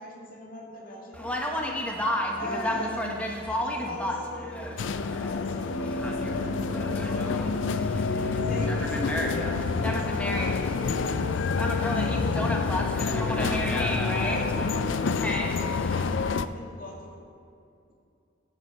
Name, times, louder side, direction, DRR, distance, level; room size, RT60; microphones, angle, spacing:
voice 1, 0.0-1.3 2.4-4.8 5.2-7.4 8.3-11.3 12.0-13.1 14.2-17.0, left 1 dB, 50° left, -3 dB, 2.3 m, -41 dB
Conversation, 1.1-16.2, equal, 5° left, 0.9 m, -32 dB
sound 1, 4.8-16.5, left 4 dB, 75° left, 0.4 m, -28 dB
Bass guitar, 5.6-11.9, right 3 dB, 25° left, 2.4 m, -42 dB
16.5 x 6.6 x 4.4 m, 2.5 s
head